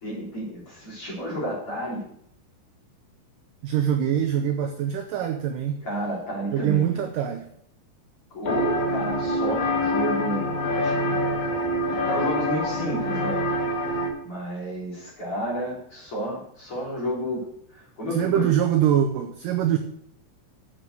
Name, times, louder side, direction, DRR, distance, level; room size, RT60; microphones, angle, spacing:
voice 1, 0.0-2.0 5.8-7.1 8.3-11.1 11.9-13.5 14.2-17.4 17.7-18.5, right 1 dB, 35° left, -4 dB, 3.8 m, -31 dB
voice 2, 3.6-5.8 6.5-7.5 18.1-19.8, right 10 dB, 80° right, 6 dB, 1.9 m, -23 dB
sound 1, 8.5-14.1, left 1 dB, 55° left, 2.7 m, -25 dB
7.6 x 6.9 x 7.6 m, 0.68 s
omnidirectional pair, 4.7 m